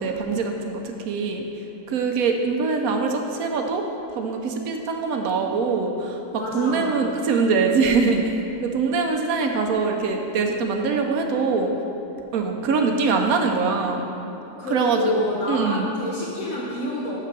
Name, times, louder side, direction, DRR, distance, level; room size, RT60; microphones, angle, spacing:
voice 1, 0.0-1.5 1.9-3.8 4.1-6.2 6.5-8.3 8.6-11.7 12.3-14.0 14.7-15.9, right 4 dB, 75° right, 3 dB, 1.1 m, -23 dB
voice 2, 6.3-7.0 14.6-17.2, left 1 dB, 65° left, -6 dB, 1.3 m, -28 dB
5.9 x 5.8 x 6.0 m, 3.0 s
omnidirectional pair, 1.5 m